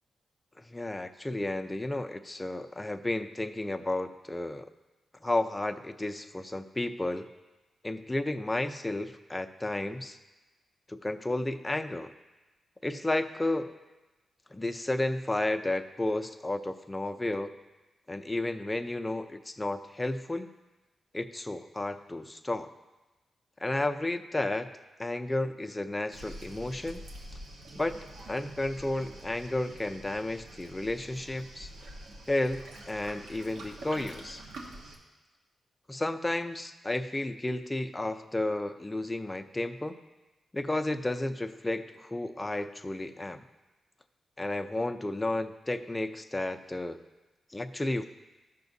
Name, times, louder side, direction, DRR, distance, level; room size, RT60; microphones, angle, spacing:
voice 1, 0.7-4.7 5.2-7.3 7.8-10.2 10.9-12.1 12.8-13.7 14.5-17.5 18.1-20.5 21.1-22.7 23.6-24.7 25.0-27.0 27.8-28.0 28.3-31.7 32.3-34.4 35.9-40.0 40.5-43.4 44.4-47.0 47.5-48.0, left 2 dB, 15° left, 8 dB, 0.5 m, -32 dB
Waves surf, 26.1-35.0, right 1 dB, 85° right, 1.2 m, -46 dB
14.0 x 5.8 x 2.7 m, 1.1 s
cardioid pair, 90°, 0 cm